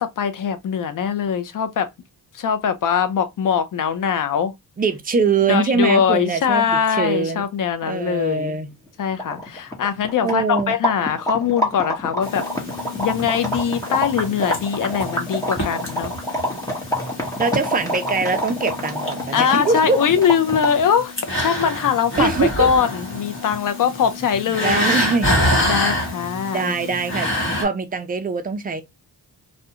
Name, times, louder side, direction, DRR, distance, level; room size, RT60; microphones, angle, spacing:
voice 1, 0.0-1.9 2.3-4.5 5.5-8.6 9.0-12.5 13.0-16.1 19.3-24.8 25.7-26.7, left 7 dB, 55° left, 0.5 m, -22 dB
voice 2, 4.8-7.4 7.8-8.7 10.2-10.7 17.4-20.0 22.2-22.7 24.5-25.4 26.5-27.3 27.6-28.8, right 4 dB, 25° right, 0.4 m, -22 dB
sound 1, 8.9-9.0 9.1-20.9, equal, 10° left, 0.8 m, -27 dB
sound 2, 12.2-27.6, left 1 dB, 30° left, 1.0 m, -27 dB
2.4 x 2.2 x 2.7 m
wide cardioid pair, 115°, 40 cm